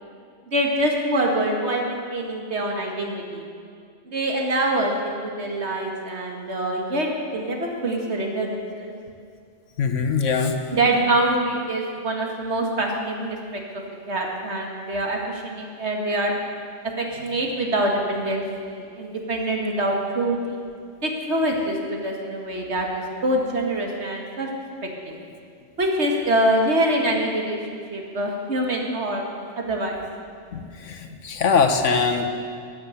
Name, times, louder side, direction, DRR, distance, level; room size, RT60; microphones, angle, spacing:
voice 1, 0.5-3.4 4.1-8.9 10.7-13.8 14.1-16.3 17.0-20.6 21.0-24.5 24.8-25.2 25.8-29.3 29.5-30.0, right 1 dB, 65° right, 0 dB, 2.1 m, -25 dB
voice 2, 9.8-10.6 30.5-32.3, left 5 dB, 85° left, 5 dB, 1.4 m, -22 dB
14.0 x 9.5 x 7.9 m, 2.2 s
omnidirectional pair, 1.3 m